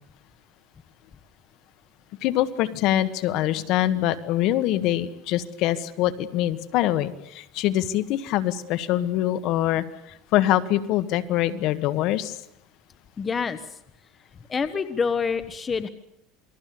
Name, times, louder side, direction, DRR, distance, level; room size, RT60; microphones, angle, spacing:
voice 1, 2.2-12.4, left 13 dB, 55° left, 12 dB, 1.7 m, -24 dB
voice 2, 13.2-13.8 14.5-15.9, left 5 dB, 20° left, 12 dB, 1.2 m, -27 dB
28.0 x 21.0 x 8.7 m, 0.76 s
cardioid pair, 150°, 0 cm